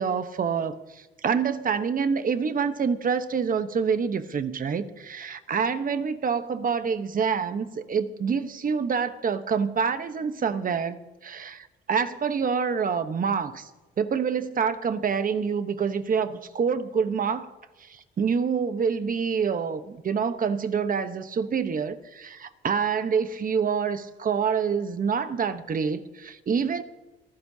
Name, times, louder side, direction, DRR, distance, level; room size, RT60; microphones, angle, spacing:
voice 1, 0.0-13.7 14.0-17.5 17.8-26.8, right 6 dB, 45° right, 1.1 m, -27 dB
24.5 x 15.0 x 2.8 m
cardioid pair, 90°, 20 cm